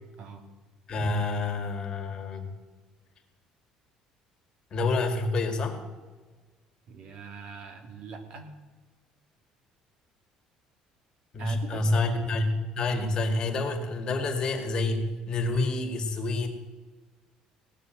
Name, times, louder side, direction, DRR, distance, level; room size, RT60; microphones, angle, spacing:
voice 1, 0.9-2.5 4.7-5.8 11.3-16.5, left 2 dB, 35° left, 4 dB, 2.2 m, -28 dB
voice 2, 6.9-8.5 11.4-12.2, right 4 dB, 55° right, 5 dB, 2.3 m, -42 dB
18.5 x 6.7 x 9.0 m, 1.4 s
cardioid pair, 140°, 2 cm